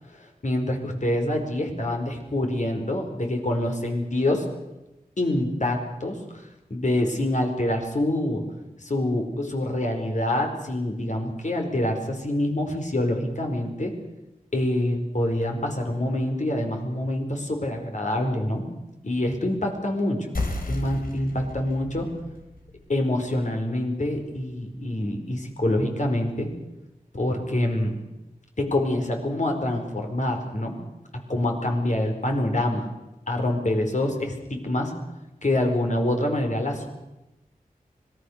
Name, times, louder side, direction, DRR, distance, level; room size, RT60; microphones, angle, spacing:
voice 1, 0.2-4.4 5.2-8.4 8.8-13.9 14.5-18.6 19.0-20.3 20.7-22.1 22.9-26.5 27.1-28.0 28.6-30.7 31.3-32.9 33.3-34.9 35.4-36.9, left 1 dB, 55° left, 3 dB, 4.8 m, -26 dB
sound 1, 20.3-25.5, left 2 dB, 80° left, 3.5 m, -36 dB
25.0 x 20.0 x 6.6 m, 0.98 s
wide cardioid pair, 50°, 15 cm